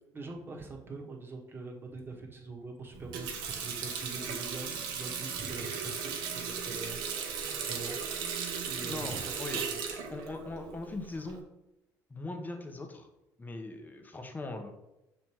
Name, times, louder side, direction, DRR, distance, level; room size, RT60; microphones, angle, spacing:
voice 1, 0.1-8.3 8.7-9.3 9.7-9.8, right 3 dB, 30° right, 1 dB, 1.4 m, -44 dB
Water tap faucet, 2.9-11.4, right 6 dB, 80° right, 0.9 m, -37 dB
voice 2, 8.8-9.6 10.1-11.4 12.1-13.1 13.4-14.7, left 2 dB, 20° left, 5 dB, 1.1 m, -40 dB
6.2 x 3.4 x 4.5 m, 0.91 s
supercardioid pair, 80°, 8 cm